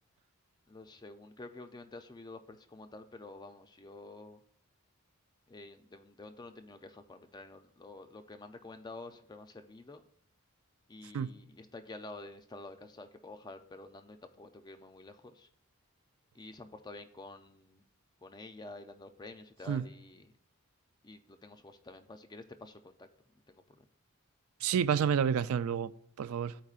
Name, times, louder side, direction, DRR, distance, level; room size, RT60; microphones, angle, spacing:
voice 1, 0.7-4.4 5.5-10.0 10.9-15.5 16.3-17.8 18.2-20.3 21.0-23.1 23.5-23.9, left 2 dB, 20° left, 0.4 m, -49 dB
voice 2, 24.6-26.6, right 7 dB, 75° right, 0.3 m, -30 dB
13.5 x 4.5 x 2.4 m
head